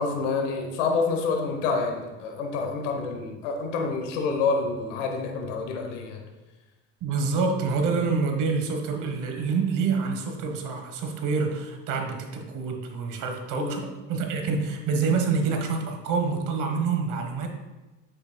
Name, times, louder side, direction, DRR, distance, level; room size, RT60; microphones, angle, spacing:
voice 1, 0.0-6.2 13.5-13.8, left 4 dB, 90° left, 3 dB, 1.0 m, -28 dB
voice 2, 7.0-17.5, right 4 dB, 55° right, 5 dB, 1.2 m, -27 dB
8.0 x 6.2 x 2.2 m, 1.1 s
supercardioid pair, 100°, 36 cm